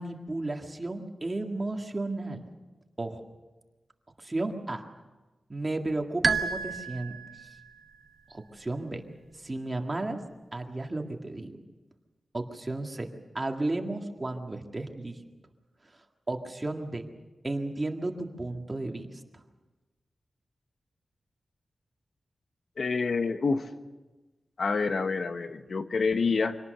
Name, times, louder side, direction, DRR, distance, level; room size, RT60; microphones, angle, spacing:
voice 1, 0.0-2.4 3.0-3.2 4.2-4.8 5.5-7.5 8.3-9.0 9.4-10.2 10.5-11.5 12.3-13.1 13.3-15.2 16.3-17.1 17.4-19.2, right 2 dB, 25° right, 3 dB, 1.9 m, -33 dB
sound 1, 6.2-7.8, right 5 dB, 50° right, 0.9 m, -30 dB
voice 2, 22.8-23.7 24.6-26.6, left 4 dB, 60° left, 9 dB, 1.0 m, -27 dB
25.0 x 18.5 x 6.7 m, 1.2 s
wide cardioid pair, 130°, 0 cm